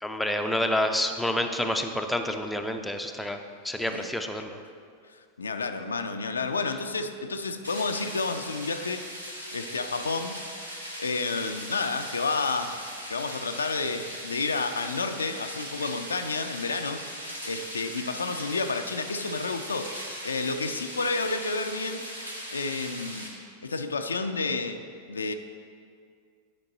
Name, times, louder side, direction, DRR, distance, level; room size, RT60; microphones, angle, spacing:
voice 1, 0.0-3.4 3.6-4.5, left 1 dB, 5° left, 5 dB, 0.5 m, -28 dB
voice 2, 5.1-9.0 9.5-10.5 11.0-22.0 22.5-23.3 23.6-24.8 25.1-25.3, left 3 dB, 75° left, 7 dB, 0.4 m, -30 dB
sound 1, 7.6-23.3, equal, 85° right, 1.2 m, -39 dB
10.0 x 5.1 x 4.0 m, 2.2 s
figure-of-eight pair, 90°, 0 cm